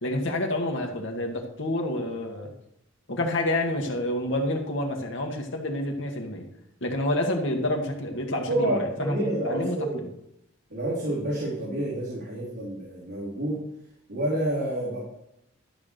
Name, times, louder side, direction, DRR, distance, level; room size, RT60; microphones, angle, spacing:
voice 1, 0.0-2.5 3.1-6.5 6.8-9.8, left 1 dB, 65° left, 2 dB, 2.0 m, -28 dB
voice 2, 8.5-10.0 10.7-13.6 14.1-15.0, right 1 dB, 60° right, -6 dB, 3.2 m, -28 dB
12.5 x 4.8 x 6.7 m, 0.79 s
head